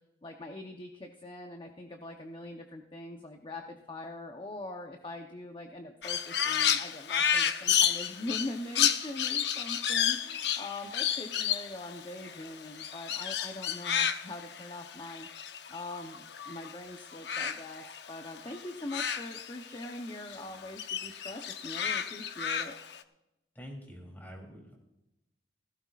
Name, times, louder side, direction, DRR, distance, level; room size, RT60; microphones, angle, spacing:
voice 1, 0.2-15.3 15.7-22.7, left 1 dB, 30° left, 3 dB, 0.8 m, -42 dB
Crow, 6.0-16.7 17.0-20.0 20.3-23.0, left 8 dB, 70° left, 0.7 m, -31 dB
voice 2, 23.5-24.8, equal, 10° left, 1 dB, 3.2 m, -46 dB
17.0 x 15.5 x 2.4 m, 0.92 s
head